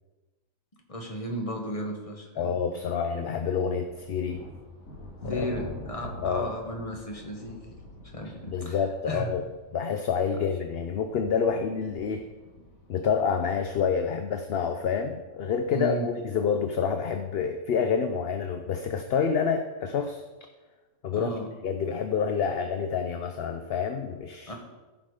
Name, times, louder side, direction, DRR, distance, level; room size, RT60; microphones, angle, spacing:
voice 1, 0.9-2.5 5.3-7.6 8.0-9.3 15.7-16.1 21.1-21.4 24.5-24.6, equal, 25° left, 1 dB, 1.6 m, -34 dB
voice 2, 2.4-4.4 5.3-5.5 6.2-6.5 8.5-9.4 9.7-12.3 12.9-20.2 21.0-21.3 21.6-24.5, left 6 dB, 55° left, 7 dB, 0.8 m, -28 dB
sound 1, 3.4-14.0, left 1 dB, 80° left, 2.1 m, -45 dB
15.0 x 5.9 x 4.9 m, 1.2 s
omnidirectional pair, 1.4 m